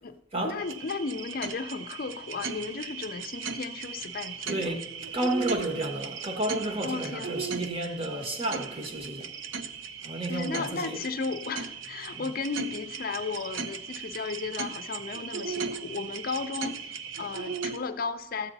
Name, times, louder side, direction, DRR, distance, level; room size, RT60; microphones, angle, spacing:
voice 1, 0.4-4.7 6.8-7.4 10.3-18.5, left 4 dB, 45° left, 0.5 m, -34 dB
sound 1, 0.6-17.8, right 5 dB, 65° right, 0.6 m, -37 dB
voice 2, 4.5-4.9 5.1-9.3 10.0-11.0 12.1-12.3, right 1 dB, 30° right, 1.2 m, -31 dB
13.5 x 8.2 x 4.0 m
head